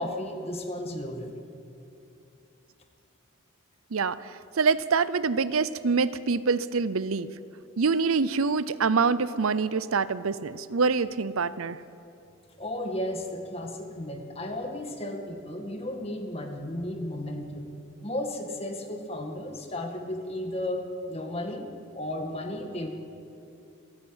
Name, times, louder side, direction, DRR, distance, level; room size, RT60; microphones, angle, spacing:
voice 1, 0.0-1.3 12.6-17.7 18.0-21.7 21.9-22.9, left 1 dB, 30° left, 3 dB, 1.9 m, -34 dB
voice 2, 3.9-7.3 7.8-11.8, right 4 dB, 85° right, 16 dB, 0.6 m, -25 dB
27.0 x 11.0 x 8.8 m, 2.7 s
head